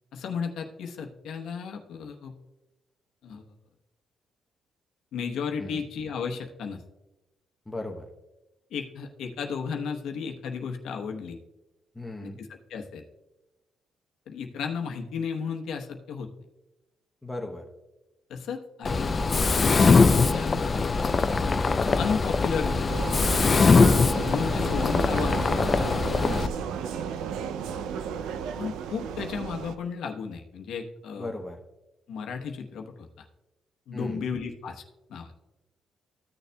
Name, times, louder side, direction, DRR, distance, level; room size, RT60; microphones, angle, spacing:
voice 1, 0.1-2.3 3.2-3.4 5.1-6.8 8.7-11.4 12.2-13.0 14.3-16.3 18.3-19.1 19.7-20.6 22.0-23.0 24.1-25.6 28.6-31.3 32.1-33.1 33.9-34.8 35.1-35.3, left 6 dB, 75° left, 3 dB, 1.0 m, -34 dB
voice 2, 7.7-8.1 11.9-12.4 17.2-17.7 26.2-26.6 31.2-31.6 33.9-34.3, left 2 dB, 10° left, 2 dB, 0.9 m, -36 dB
Mechanisms, 18.9-26.5, left 4 dB, 35° left, 0.4 m, -22 dB
Vehicle, 22.9-29.8, right 7 dB, 90° right, 0.4 m, -34 dB
14.0 x 6.6 x 2.3 m, 1.0 s
cardioid pair, 90°, 0 cm